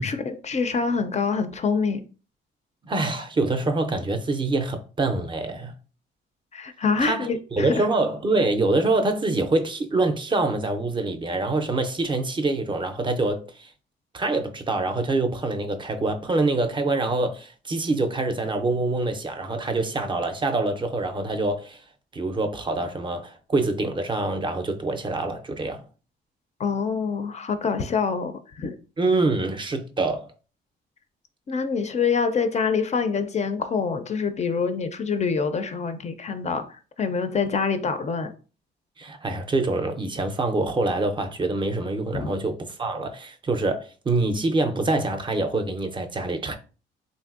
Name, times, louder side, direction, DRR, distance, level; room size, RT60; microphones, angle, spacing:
voice 1, 0.0-2.0 6.5-7.9 26.6-28.7 31.5-36.7 37.0-38.3 42.1-42.3, left 5 dB, 35° left, 0.4 m, -25 dB
voice 2, 2.8-5.7 7.0-13.7 14.1-21.8 22.1-25.8 29.0-30.3 39.0-46.6, right 2 dB, 25° right, 0.5 m, -25 dB
3.1 x 2.5 x 2.4 m
cardioid pair, 90°, 20 cm